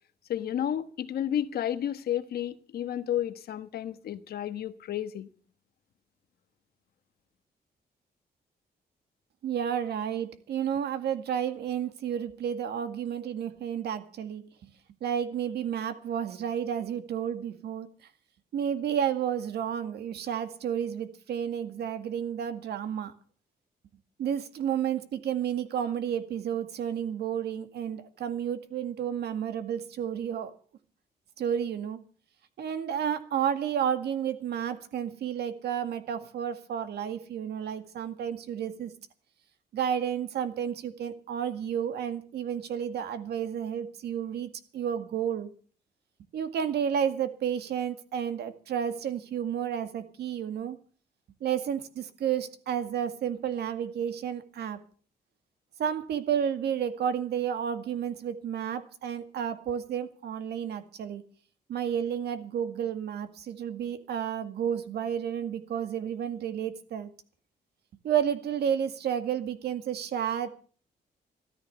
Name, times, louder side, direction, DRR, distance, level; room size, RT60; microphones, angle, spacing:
voice 1, 0.3-5.3, left 10 dB, 70° left, 1.2 m, -31 dB
voice 2, 9.4-14.7 15.0-17.9 18.5-23.1 24.2-30.5 31.4-32.0 32.6-38.9 39.7-45.5 46.3-50.8 51.4-54.8 55.8-61.2 61.7-67.1 68.0-70.5, right 9 dB, 85° right, 2.0 m, -31 dB
14.0 x 13.5 x 6.9 m
wide cardioid pair, 160°, 17 cm